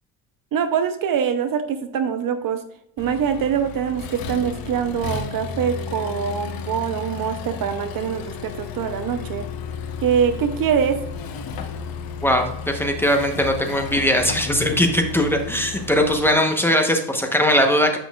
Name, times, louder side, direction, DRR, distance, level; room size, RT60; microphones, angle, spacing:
voice 1, 0.5-2.6 3.0-9.4 10.0-11.0, right 7 dB, 45° right, 9 dB, 0.7 m, -23 dB
Accelerating revving vroom, 3.0-16.2, left 6 dB, 50° left, 1.0 m, -33 dB
voice 2, 12.2-18.0, equal, 5° left, 3 dB, 0.9 m, -20 dB
8.4 x 6.2 x 2.3 m, 0.79 s
cardioid pair, 115°, 47 cm